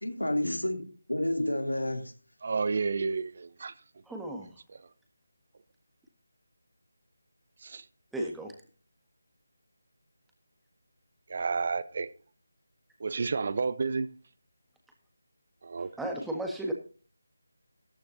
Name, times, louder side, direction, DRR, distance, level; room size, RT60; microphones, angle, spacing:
voice 1, 0.0-2.1, left 1 dB, 90° left, 3.0 m, -30 dB
voice 2, 2.4-3.7 4.7-4.8 7.6-7.9 11.3-12.1 13.0-14.1 15.6-16.1, right 4 dB, 40° right, 0.7 m, -31 dB
voice 3, 4.1-4.5 8.1-8.5 16.0-16.7, right 1 dB, 5° right, 1.6 m, -34 dB
14.0 x 13.0 x 2.8 m
figure-of-eight pair, 160°, 0 cm